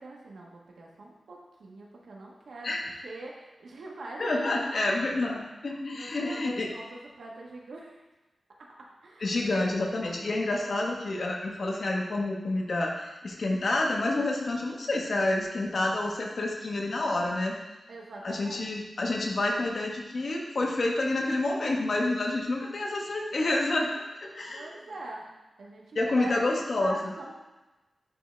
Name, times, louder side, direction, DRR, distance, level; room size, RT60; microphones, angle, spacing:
voice 1, 0.0-5.4 5.9-8.0 8.6-8.7 9.0-9.3 17.9-18.6 24.5-25.3 25.6-26.4 26.7-27.3, right 2 dB, 80° right, -2 dB, 1.2 m, -43 dB
voice 2, 4.2-6.7 9.2-17.6 18.2-24.7 25.9-27.1, left 2 dB, 55° left, 0 dB, 1.1 m, -28 dB
10.0 x 3.6 x 3.2 m, 1.1 s
wide cardioid pair, 105°, 0 cm